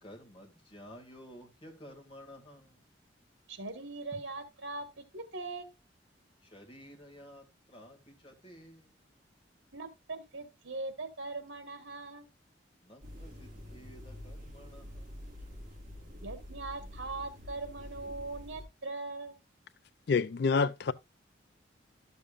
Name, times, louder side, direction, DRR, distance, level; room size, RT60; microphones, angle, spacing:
voice 1, 0.0-2.8 6.4-9.0 12.8-15.1, equal, 30° left, 2.2 m, -52 dB
voice 2, 3.5-4.9 5.1-5.7 9.7-12.3 16.2-19.4, right 3 dB, 90° right, 1.6 m, -40 dB
sound 1, 13.0-18.7, left 1 dB, 40° right, 4.4 m, -47 dB
voice 3, 20.1-20.9, left 5 dB, 60° left, 0.4 m, -27 dB
12.5 x 7.0 x 2.4 m
head